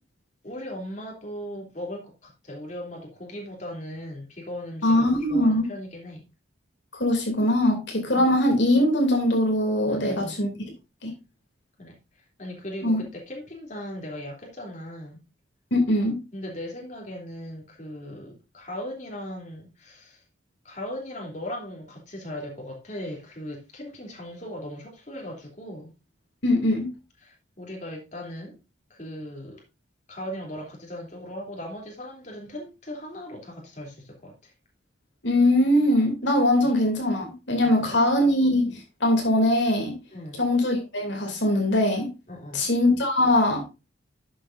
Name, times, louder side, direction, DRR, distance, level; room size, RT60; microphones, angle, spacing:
voice 1, 0.4-6.2 8.1-8.3 9.9-10.4 11.8-12.0 12.4-15.2 16.3-20.2 20.6-25.9 27.2-28.6 28.9-29.6 30.1-34.5 36.6-36.7 37.6-38.1 40.1-40.4 42.3-42.7, left 1 dB, 40° left, 3.1 m, -38 dB
voice 2, 4.8-5.6 6.9-10.5 11.0-11.1 12.8-13.0 15.7-16.2 26.4-26.9 35.2-40.0 40.4-42.1 42.5-43.7, left 1 dB, 65° left, 2.8 m, -22 dB
11.5 x 7.8 x 2.6 m
head